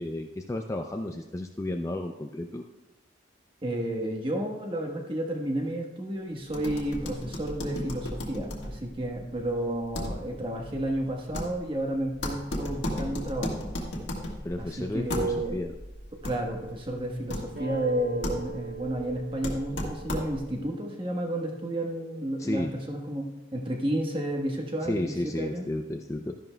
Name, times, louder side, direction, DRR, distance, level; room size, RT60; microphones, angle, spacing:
voice 1, 0.0-2.6 14.4-15.7 22.4-22.7 24.8-26.4, left 1 dB, 15° left, 4 dB, 0.4 m, -32 dB
voice 2, 3.6-13.7 14.6-15.6 16.2-25.7, right 1 dB, 25° right, 1 dB, 1.2 m, -31 dB
sound 1, 6.5-20.6, left 1 dB, 70° left, 1.6 m, -36 dB
sound 2, 17.5-22.7, right 5 dB, 85° right, 2.7 m, -43 dB
13.0 x 10.5 x 2.2 m, 1.0 s
head